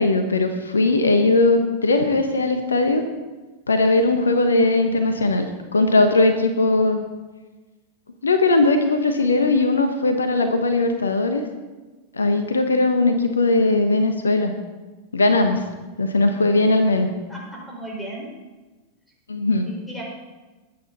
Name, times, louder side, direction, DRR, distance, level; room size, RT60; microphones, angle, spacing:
voice 1, 0.0-3.0 3.7-7.0 8.2-11.4 12.1-14.5 15.1-15.6 16.0-17.1 19.3-19.7, left 2 dB, 75° left, 7 dB, 1.2 m, -19 dB
voice 2, 17.7-18.3 19.7-20.0, right 1 dB, 5° left, -2 dB, 5.0 m, -35 dB
21.0 x 8.9 x 4.2 m, 1.2 s
figure-of-eight pair, 90°, 0 cm